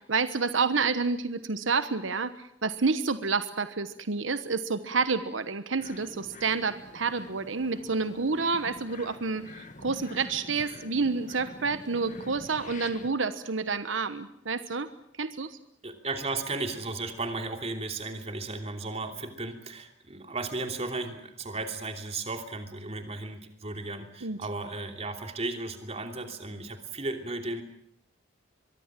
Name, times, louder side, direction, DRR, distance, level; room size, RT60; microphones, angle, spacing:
voice 1, 0.0-14.9 15.2-15.6 24.2-24.4, right 4 dB, 85° right, 12 dB, 1.1 m, -29 dB
sound 1, 5.8-13.1, left 2 dB, 40° left, 1.5 m, -46 dB
voice 2, 15.8-27.6, right 3 dB, 35° right, 5 dB, 3.0 m, -35 dB
23.5 x 23.0 x 7.6 m, 0.71 s
head